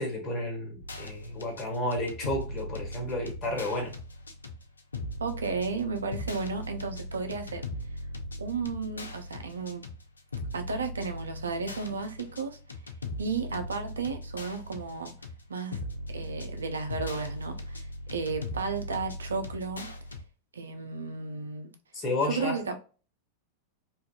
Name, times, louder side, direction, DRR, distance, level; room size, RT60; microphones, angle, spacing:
voice 1, 0.0-3.9 21.9-22.6, left 1 dB, 30° left, 1.2 m, -31 dB
sound 1, 0.8-20.2, left 1 dB, 75° left, 0.4 m, -39 dB
voice 2, 5.2-7.6 8.4-9.9 10.5-12.6 13.2-15.1 15.5-15.8 16.1-19.9 20.5-21.7 22.3-22.8, right 4 dB, 70° right, 0.4 m, -33 dB
2.5 x 2.3 x 2.3 m
figure-of-eight pair, 90°, 0 cm